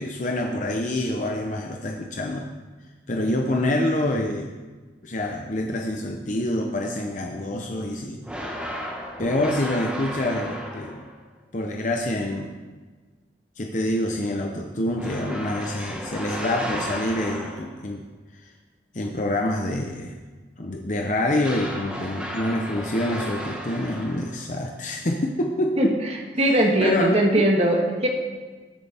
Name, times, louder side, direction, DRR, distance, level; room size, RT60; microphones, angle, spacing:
voice 1, 0.0-2.5 3.1-4.5 5.0-8.6 9.2-11.0 11.5-12.5 13.6-18.0 18.3-18.5 18.9-20.2 20.6-26.0 26.4-27.4, left 1 dB, 40° left, 1 dB, 0.8 m, -26 dB
sound 1, 8.2-11.2 15.0-17.9 21.4-24.5, equal, 5° right, 1.4 m, -34 dB
voice 2, 26.4-28.1, right 1 dB, 35° right, 1 dB, 1.6 m, -20 dB
20.0 x 8.4 x 3.6 m, 1.3 s
head